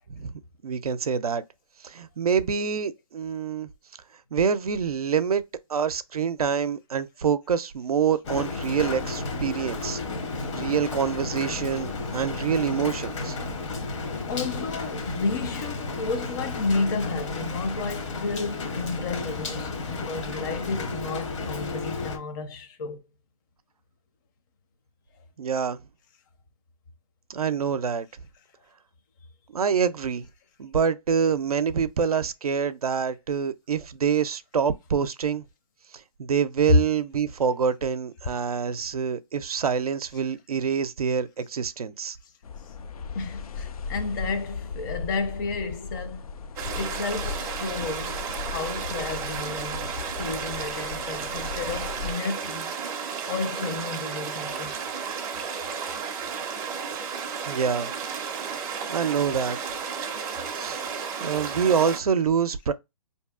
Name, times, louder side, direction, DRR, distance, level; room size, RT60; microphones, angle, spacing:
voice 1, 0.6-1.4 1.8-3.7 4.3-5.4 5.7-10.0 10.5-13.4 25.4-25.8 27.3-28.1 29.5-30.3 30.6-35.4 36.2-42.2 57.5-57.9 58.9-59.6 60.5-60.8 61.2-62.7, right 7 dB, 90° right, 0.4 m, -26 dB
Rain, 8.2-22.2, left 3 dB, 55° left, 0.9 m, -32 dB
voice 2, 14.3-23.0 36.7-36.8 43.1-46.2 46.7-52.8 53.2-54.8, left 3 dB, 35° left, 0.6 m, -31 dB
sound 1, 42.4-52.1, left 5 dB, 75° left, 0.4 m, -37 dB
sound 2, 46.6-62.0, right 6 dB, 15° right, 0.4 m, -33 dB
4.6 x 2.7 x 2.3 m
hypercardioid pair, 140°, 19 cm